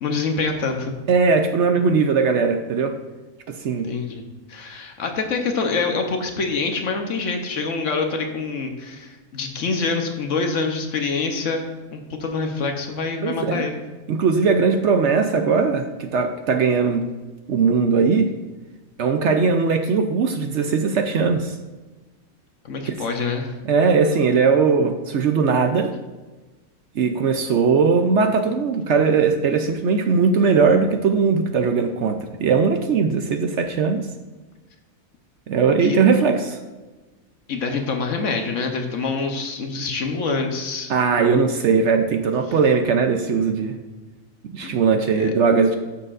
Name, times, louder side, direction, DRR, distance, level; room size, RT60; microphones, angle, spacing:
voice 1, 0.0-0.9 3.8-4.2 4.5-11.6 11.9-13.8 22.6-23.5 35.8-36.0 37.5-40.9 41.2-41.5 44.6-44.8 45.2-45.3, left 4 dB, 60° left, 4 dB, 1.2 m, -26 dB
voice 2, 1.1-3.0 3.5-3.9 13.2-13.6 14.1-17.1 17.5-18.3 19.0-21.6 22.9-23.0 23.6-25.9 27.0-34.1 35.5-36.6 40.9-43.8 44.4-45.8, right 5 dB, 65° right, 6 dB, 0.8 m, -19 dB
13.0 x 6.6 x 2.5 m, 1.2 s
omnidirectional pair, 1.5 m